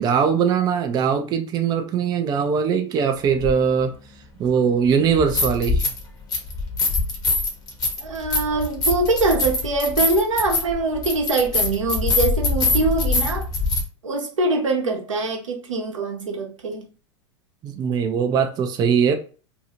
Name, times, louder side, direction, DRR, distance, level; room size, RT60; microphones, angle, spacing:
voice 1, 0.0-3.9 4.4-5.8 17.6-19.1, right 7 dB, 25° right, 0.4 m, -21 dB
sound 1, 3.4-3.5 5.1-6.0 6.3-13.8, left 3 dB, 25° left, 1.0 m, -23 dB
voice 2, 8.0-13.5 14.0-16.8, right 3 dB, 85° right, 0.8 m, -23 dB
2.7 x 2.3 x 2.9 m
hypercardioid pair, 100°, 16 cm